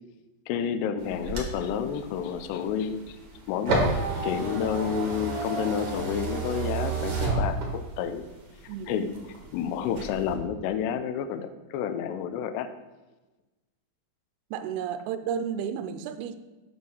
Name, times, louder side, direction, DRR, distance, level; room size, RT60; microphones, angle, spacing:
voice 1, 0.5-3.2 3.5-3.8 4.2-8.3 8.6-9.1 9.5-12.7, left 8 dB, 85° left, 2.7 m, -30 dB
sound 1, 1.0-8.1 8.5-9.5 9.9-10.3, right 3 dB, 50° right, 1.7 m, -30 dB
voice 2, 14.5-16.4, right 8 dB, 85° right, 2.3 m, -32 dB
8.2 x 4.7 x 6.2 m
omnidirectional pair, 4.9 m